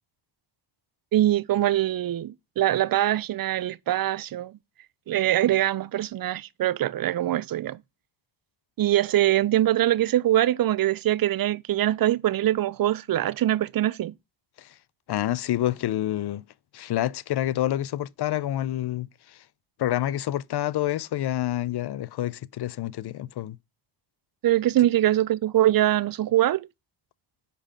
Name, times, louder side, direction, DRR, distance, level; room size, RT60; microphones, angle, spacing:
voice 1, 1.1-4.5 5.1-7.8 8.8-14.1 24.4-26.7, right 13 dB, 50° right, 0.5 m, -23 dB
voice 2, 15.1-16.4 16.7-19.1 19.8-23.6, left 13 dB, 60° left, 0.5 m, -28 dB
5.3 x 5.0 x 5.0 m
supercardioid pair, 40°, 45 cm